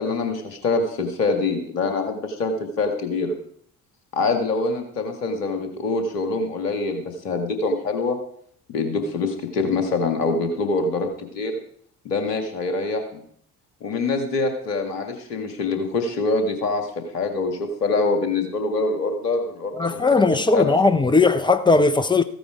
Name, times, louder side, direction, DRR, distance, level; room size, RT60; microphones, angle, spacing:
voice 1, 0.0-3.4 4.1-8.2 8.7-11.6 12.0-13.2 13.8-20.2 20.5-20.7, left 3 dB, 75° left, 1.9 m, -25 dB
voice 2, 19.7-22.2, left 3 dB, 10° left, 0.7 m, -18 dB
14.5 x 9.1 x 4.9 m
figure-of-eight pair, 50°, 48 cm